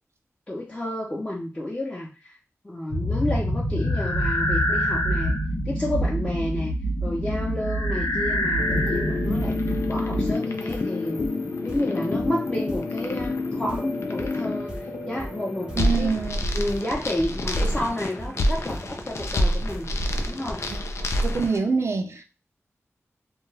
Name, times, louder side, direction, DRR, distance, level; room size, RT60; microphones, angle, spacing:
voice 1, 0.5-2.4 2.6-5.4 5.6-6.7 7.0-11.2 11.6-16.2 16.5-19.9 20.3-20.6, left 1 dB, 20° left, 0.7 m, -31 dB
sound 1, 2.9-10.3, equal, 90° left, 0.9 m, -25 dB
sound 2, 8.6-21.6, left 2 dB, 65° left, 0.4 m, -28 dB
sound 3, 10.2-20.8, right 1 dB, 15° right, 0.7 m, -39 dB
voice 2, 15.8-16.4 20.7-20.8 21.2-22.2, right 5 dB, 65° right, 0.4 m, -25 dB
2.3 x 2.2 x 3.2 m
wide cardioid pair, 70°, 5 cm